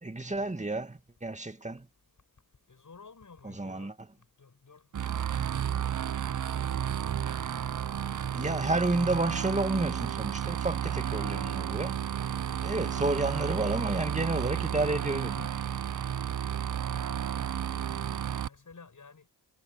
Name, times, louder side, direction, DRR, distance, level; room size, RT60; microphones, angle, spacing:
voice 1, 0.0-1.9 3.4-3.9 8.3-12.0 12.6-15.5, right 2 dB, 15° right, 2.1 m, -31 dB
voice 2, 2.7-4.0 4.4-6.1 6.5-7.0 16.4-17.8 18.2-19.3, left 4 dB, 50° left, 6.5 m, -54 dB
sound 1, 4.9-18.5, right 9 dB, 50° right, 0.6 m, -32 dB
cardioid pair, 55°, 41 cm